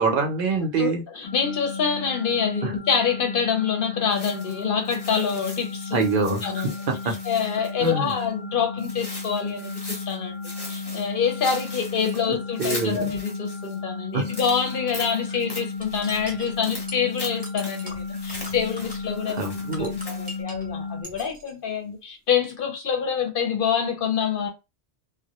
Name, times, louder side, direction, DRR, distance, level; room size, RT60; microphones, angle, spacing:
voice 1, 0.0-1.0 2.6-2.7 5.9-7.1 7.8-8.1 12.6-13.0 14.1-14.4 19.3-19.9, right 4 dB, 60° right, 0.7 m, -25 dB
voice 2, 0.8-6.0 6.4-6.7 7.2-10.4 10.7-19.5 19.8-24.5, left 7 dB, 60° left, 0.7 m, -26 dB
sound 1, 1.2-21.0, left 4 dB, 90° left, 0.9 m, -34 dB
sound 2, 4.1-8.2 8.8-10.2 10.4-13.8 14.2-20.4, left 1 dB, 25° left, 0.6 m, -40 dB
sound 3, 15.8-20.7 21.0-21.5, equal, 10° right, 0.5 m, -41 dB
2.1 x 2.0 x 2.8 m
omnidirectional pair, 1.1 m